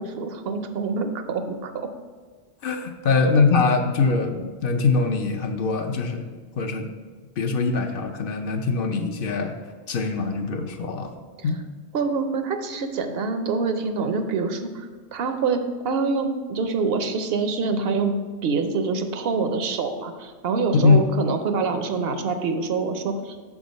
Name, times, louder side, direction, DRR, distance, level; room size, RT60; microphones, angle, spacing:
voice 1, 0.0-1.7 3.1-3.2 11.4-11.5 11.9-18.1 18.4-23.4, right 4 dB, 70° right, 7 dB, 0.8 m, -26 dB
voice 2, 2.6-6.3 6.6-6.9 7.4-9.5 9.9-11.1 11.4-11.6 20.7-21.0, left 4 dB, 60° left, 4 dB, 0.7 m, -22 dB
6.2 x 3.7 x 5.1 m, 1.5 s
omnidirectional pair, 1.1 m